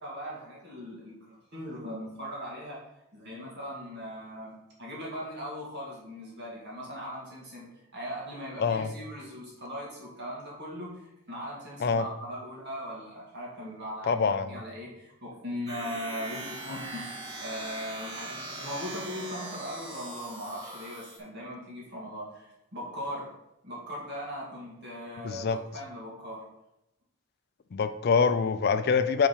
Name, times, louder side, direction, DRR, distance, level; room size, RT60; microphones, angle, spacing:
voice 1, 0.0-2.8 3.1-4.5 4.8-7.7 7.9-17.1 17.4-23.3 23.6-26.4, equal, 50° right, -4 dB, 2.1 m, -39 dB
voice 2, 8.6-8.9 11.8-12.0 14.1-14.5 25.2-25.6 27.7-29.3, left 5 dB, 50° left, 11 dB, 0.4 m, -25 dB
sound 1, 15.7-21.2, right 2 dB, 15° right, 1.1 m, -40 dB
5.5 x 5.3 x 4.3 m, 0.87 s
head